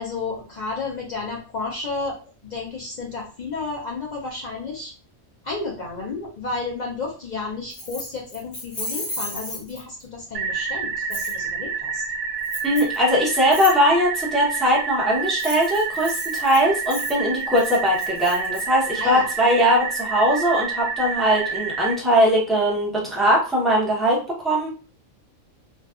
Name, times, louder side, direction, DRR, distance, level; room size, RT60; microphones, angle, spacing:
voice 1, 0.0-4.9 5.4-12.0 18.9-19.3, left 3 dB, 65° left, -3 dB, 0.4 m, -32 dB
Keys jangling, 7.7-10.0 11.1-11.3 12.4-13.0 13.5-13.7 15.2-18.6, left 1 dB, 30° left, 0.9 m, -34 dB
sound 1, 10.3-21.9, right 5 dB, 80° right, 1.1 m, -29 dB
voice 2, 12.6-24.7, equal, ahead, -5 dB, 0.6 m, -20 dB
2.5 x 2.3 x 2.3 m, 0.37 s
omnidirectional pair, 1.4 m